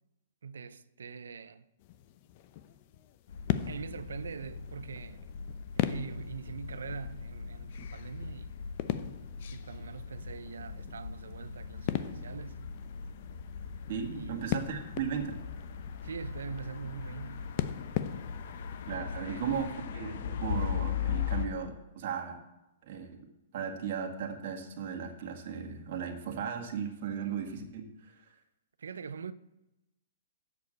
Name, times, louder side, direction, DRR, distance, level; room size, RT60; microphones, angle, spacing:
voice 1, 0.4-1.6 3.7-5.2 5.7-8.5 9.5-12.7 14.1-14.4 16.0-17.6 18.9-19.5 28.8-29.3, right 6 dB, 90° right, 0.6 m, -43 dB
sound 1, 1.8-19.0, left 12 dB, 45° left, 0.7 m, -40 dB
sound 2, 3.3-21.5, left 7 dB, 60° left, 1.0 m, -39 dB
voice 2, 13.9-15.4 18.9-22.4 22.8-23.1 23.5-28.1, right 7 dB, 55° right, 1.9 m, -36 dB
8.1 x 6.7 x 7.7 m
hypercardioid pair, 145°, 0 cm